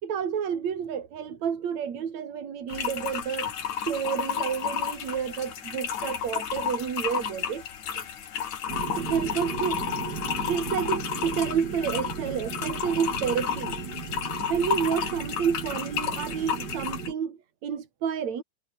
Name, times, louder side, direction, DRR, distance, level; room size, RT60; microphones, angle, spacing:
voice 1, 0.0-3.5 3.9-7.7 7.9-8.0 9.0-9.8 10.5-13.8 14.5-18.4, right 7 dB, 70° right, 3.9 m, -30 dB
sound 1, 2.7-17.1, left 8 dB, 75° left, 3.6 m, -32 dB
sound 2, 8.7-17.1, right 6 dB, 35° right, 2.4 m, -36 dB
omnidirectional pair, 3.3 m